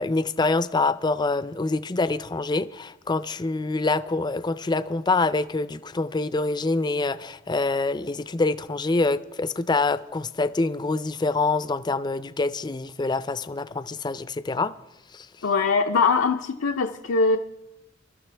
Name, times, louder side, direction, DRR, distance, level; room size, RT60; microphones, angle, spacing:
voice 1, 0.0-14.7 15.1-15.3, left 3 dB, 20° left, 0.4 m, -25 dB
voice 2, 15.4-17.4, left 4 dB, 85° left, 0.6 m, -22 dB
23.5 x 12.5 x 3.4 m
head